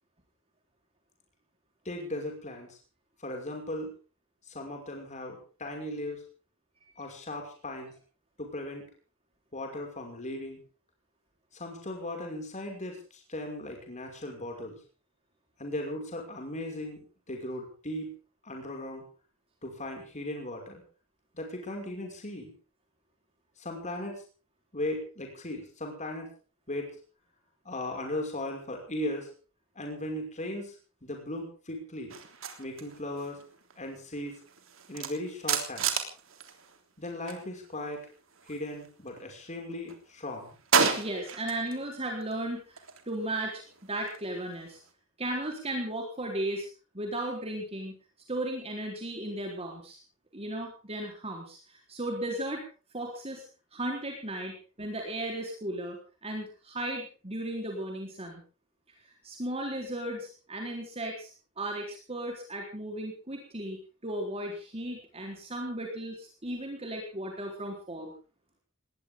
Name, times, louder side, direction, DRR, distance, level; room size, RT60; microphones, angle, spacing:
voice 1, 1.9-2.8 3.2-3.9 4.5-6.2 7.0-7.9 8.4-8.9 9.5-10.6 11.5-14.8 15.6-17.0 17.3-18.1 18.4-19.1 19.6-20.8 21.3-22.5 23.6-24.2 24.7-26.3 26.7-26.9 27.7-29.3 29.8-30.8 31.0-32.2 32.6-33.4 33.8-34.4 34.9-35.9 37.0-38.0 38.5-40.6, left 1 dB, 35° left, 2 dB, 5.7 m, -37 dB
sound 1, 32.1-37.4 37.7-39.3 39.7-41.8 42.1-44.9, right 6 dB, 70° right, 3.4 m, -34 dB
voice 2, 41.0-42.8 43.1-44.8 45.2-46.7 46.9-47.9 48.3-50.0 50.3-52.6 52.9-53.4 53.7-58.4 59.2-61.3 61.6-68.1, right 1 dB, 30° right, 1 dB, 3.9 m, -35 dB
20.0 x 19.0 x 3.7 m, 0.37 s
head